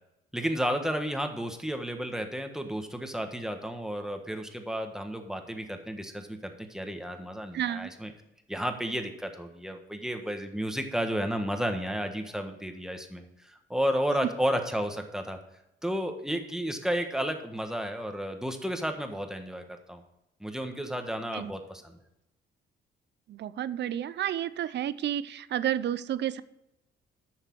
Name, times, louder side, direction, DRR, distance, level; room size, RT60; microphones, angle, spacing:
voice 1, 0.3-8.1 8.5-15.4 15.8-20.0 20.4-22.0, equal, 5° right, 5 dB, 1.4 m, -32 dB
voice 2, 7.5-7.9 21.3-21.5 23.3-26.4, right 11 dB, 60° right, 16 dB, 0.6 m, -31 dB
9.9 x 6.6 x 4.7 m, 0.89 s
cardioid pair, 90°, 20 cm